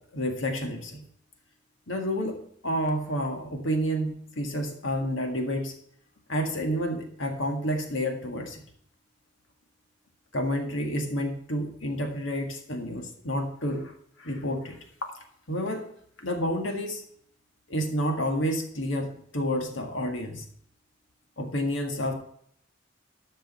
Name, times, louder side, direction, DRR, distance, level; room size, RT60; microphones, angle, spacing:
voice 1, 0.1-1.1 1.9-2.4 2.6-5.7 6.3-8.6 10.3-13.9 14.2-14.8 15.5-15.9 16.2-17.0 17.7-20.4 21.4-22.1, equal, 85° left, 3 dB, 1.9 m, -29 dB
13.0 x 5.3 x 5.5 m, 0.65 s
head